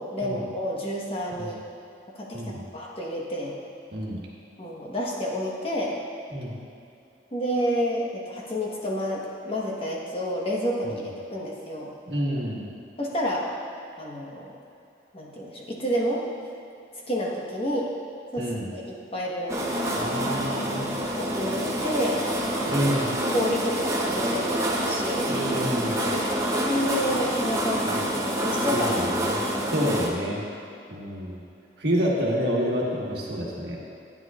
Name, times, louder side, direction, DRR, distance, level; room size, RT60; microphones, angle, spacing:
voice 1, 0.0-1.6 2.2-3.6 4.6-6.0 7.3-11.9 13.0-13.5 14.0-14.5 15.1-16.2 17.1-17.9 18.3-19.6 21.2-22.2 23.3-25.3 26.6-28.9, equal, 30° left, -3 dB, 1.2 m, -29 dB
voice 2, 2.3-2.6 3.9-4.2 6.3-6.6 12.1-12.7 18.4-18.7 20.0-20.9 22.7-23.2 25.3-26.1 27.9-28.1 28.7-29.4 29.7-30.4 30.9-31.4 31.8-33.8, equal, 65° right, -4 dB, 1.4 m, -28 dB
sound 1, 19.5-30.1, right 1 dB, 15° right, 0.8 m, -27 dB
11.0 x 9.4 x 2.4 m, 2.7 s
head